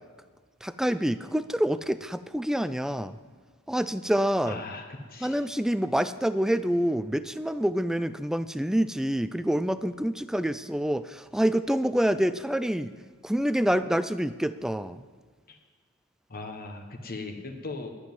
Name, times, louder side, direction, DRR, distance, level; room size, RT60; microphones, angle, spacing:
voice 1, 0.6-3.2 3.7-4.6 5.2-12.9 13.2-15.0, equal, ahead, 13 dB, 0.3 m, -27 dB
voice 2, 4.4-5.4 15.5-15.6 16.3-17.9, left 3 dB, 45° left, 3 dB, 1.2 m, -38 dB
11.5 x 7.2 x 9.4 m, 1.5 s
head